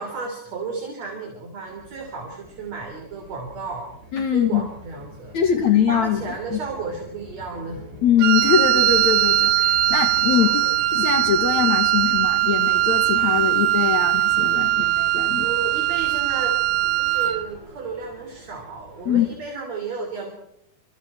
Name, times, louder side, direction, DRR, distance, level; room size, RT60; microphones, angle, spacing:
voice 1, 0.0-3.9 4.3-5.3 5.9-7.8 10.3-10.6 15.4-20.3, right 4 dB, 45° right, 2 dB, 4.3 m, -33 dB
sound 1, 1.6-19.4, right 1 dB, 25° right, 5.9 m, -44 dB
voice 2, 4.1-4.7 5.3-6.6 8.0-15.5 19.1-19.3, left 8 dB, 55° left, 6 dB, 2.5 m, -22 dB
Wind instrument woodwind instrument, 8.2-17.5, right 15 dB, 80° right, 3.1 m, -20 dB
27.5 x 27.5 x 4.3 m, 0.75 s
omnidirectional pair, 4.4 m